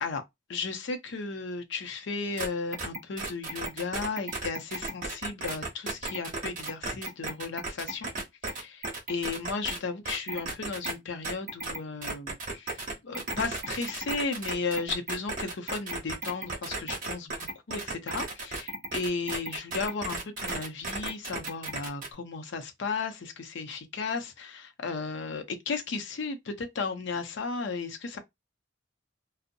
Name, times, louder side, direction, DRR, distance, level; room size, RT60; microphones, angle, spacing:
voice 1, 0.5-8.1 8.4-17.4 17.7-28.2, left 4 dB, 65° left, 0.5 m, -35 dB
sound 1, 2.4-2.5 2.7-9.8 10.1-10.9 11.2-22.1, right 2 dB, 45° right, 0.8 m, -34 dB
2.6 x 2.0 x 2.5 m
head